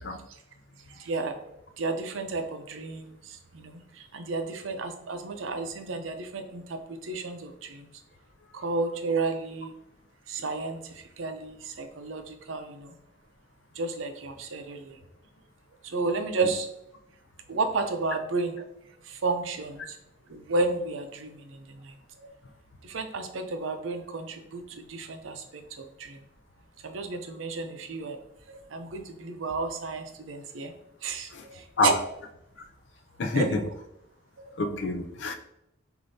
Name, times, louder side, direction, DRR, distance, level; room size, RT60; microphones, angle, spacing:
voice 1, 1.0-1.4 1.8-7.9 8.5-9.7 10.3-12.9 13.8-15.0 15.8-16.7 17.5-18.6 19.0-20.0 20.3-21.9 22.8-26.2 26.8-28.2 28.5-30.7 31.0-31.9 33.3-33.7 34.5-34.6, right 3 dB, 85° right, 7 dB, 0.6 m, -32 dB
voice 2, 33.2-33.6 34.6-35.4, left 2 dB, 65° left, 6 dB, 0.5 m, -26 dB
6.4 x 2.6 x 2.7 m, 0.82 s
head